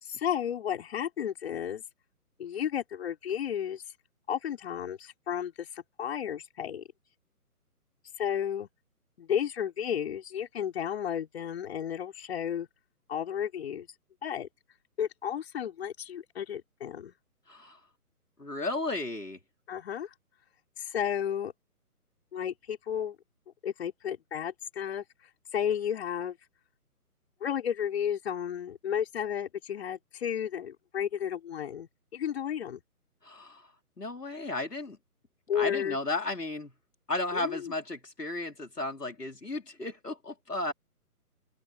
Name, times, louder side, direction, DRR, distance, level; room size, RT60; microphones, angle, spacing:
voice 1, 0.0-1.8 2.4-3.8 4.3-6.8 8.2-8.7 9.2-12.7 13.1-13.9 14.2-14.5 15.0-17.1 19.7-20.1 20.8-21.5 22.3-23.2 23.6-25.0 25.5-26.4 27.4-32.8 35.5-36.0 37.3-37.7, left 9 dB, 40° left, 5.9 m, -33 dB
voice 2, 18.4-19.4 33.2-33.6 34.0-35.0 35.5-36.7 37.1-40.7, left 2 dB, 90° left, 4.8 m, -34 dB
open air
figure-of-eight pair, 145°, 46 cm